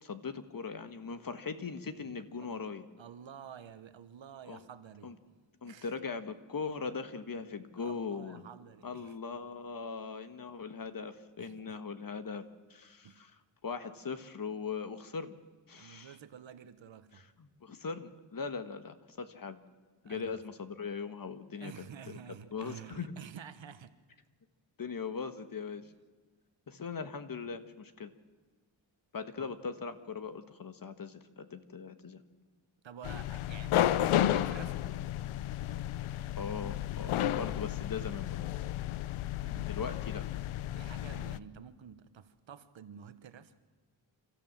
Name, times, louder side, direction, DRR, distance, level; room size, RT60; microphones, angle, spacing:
voice 1, 0.0-2.9 4.5-4.6 5.0-5.1 5.6-8.4 8.8-12.4 12.7-13.3 13.6-15.4 15.7-16.1 17.1-19.6 20.0-21.7 22.5-23.1 24.8-25.8 26.7-28.1 29.1-32.2 36.4-38.4 39.7-40.3, left 5 dB, 45° left, 1.5 m, -40 dB
voice 2, 2.0-5.9 7.8-9.2 11.4-11.8 13.0-13.2 15.8-17.2 17.7-17.8 20.0-20.4 21.6-24.0 29.4-29.5 32.8-34.0 34.3-34.8 39.4-40.1 40.7-43.5, right 8 dB, 70° right, 1.3 m, -50 dB
sound 1, 33.0-41.4, left 12 dB, 90° left, 0.7 m, -32 dB
29.0 x 13.5 x 7.5 m
cardioid pair, 90°, 48 cm